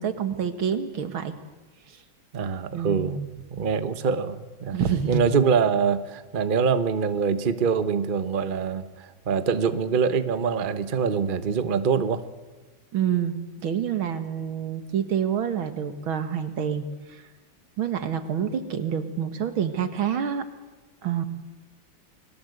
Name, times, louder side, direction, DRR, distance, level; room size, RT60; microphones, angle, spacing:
voice 1, 0.0-1.3 2.7-3.3 4.7-5.3 12.9-16.8 17.8-20.4 21.0-21.2, right 8 dB, 85° right, 9 dB, 2.5 m, -27 dB
voice 2, 2.3-3.2 3.5-4.8 5.1-12.2, right 6 dB, 30° right, 11 dB, 1.0 m, -24 dB
29.5 x 21.5 x 8.1 m, 1.2 s
omnidirectional pair, 2.2 m